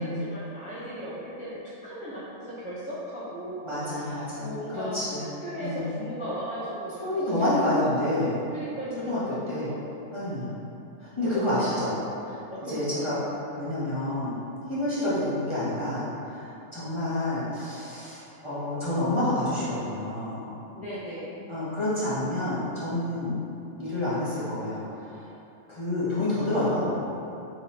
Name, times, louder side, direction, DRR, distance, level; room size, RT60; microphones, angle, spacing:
voice 1, 0.0-5.0 5.4-9.8 11.2-11.8 12.5-13.1 20.7-21.4, equal, 10° right, -10 dB, 0.4 m, -37 dB
voice 2, 3.6-4.5 4.7-5.2 5.6-5.9 7.0-8.4 9.1-9.2 9.5-9.7 10.1-10.6 11.0-12.0 12.2-12.4 12.7-13.2 13.6-14.4 14.7-20.4 21.5-23.4 23.8-25.2 25.7-27.0, left 1 dB, 30° left, -11 dB, 0.7 m, -28 dB
3.4 x 2.9 x 4.1 m, 2.8 s
omnidirectional pair, 1.4 m